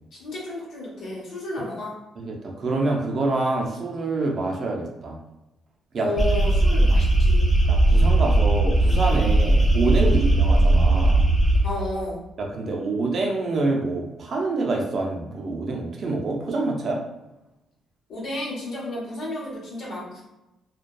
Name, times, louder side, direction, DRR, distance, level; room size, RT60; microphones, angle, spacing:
voice 1, 0.1-1.9 6.0-7.5 11.6-12.2 18.1-20.2, left 1 dB, 70° left, -5 dB, 1.1 m, -31 dB
voice 2, 2.2-5.2 5.9-6.1 7.7-11.3 12.4-17.0, right 3 dB, 55° right, 0 dB, 0.5 m, -26 dB
sound 1, 6.2-11.6, right 2 dB, 15° left, 0.7 m, -18 dB
2.6 x 2.2 x 2.2 m, 0.97 s
cardioid pair, 90°, 0 cm